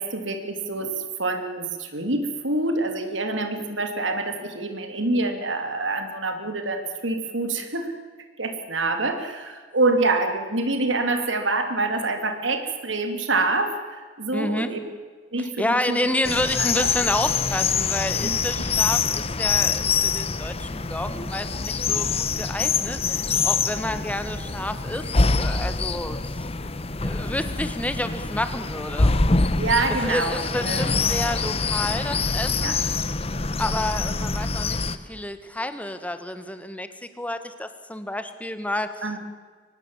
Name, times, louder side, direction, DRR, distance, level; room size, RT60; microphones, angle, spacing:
voice 1, 0.0-7.9 8.4-14.8 15.3-16.0 16.6-16.9 18.2-18.4 29.6-30.4 30.7-31.0 32.6-32.8 39.0-39.2, right 2 dB, 80° right, 6 dB, 2.8 m, -26 dB
voice 2, 14.3-14.7 15.4-26.4 27.0-29.1 30.0-32.8 33.6-36.9 37.2-38.9, left 1 dB, 10° left, 10 dB, 1.5 m, -29 dB
sound 1, 16.2-35.0, left 4 dB, 30° left, 0.9 m, -25 dB
24.0 x 19.5 x 7.4 m, 1.5 s
head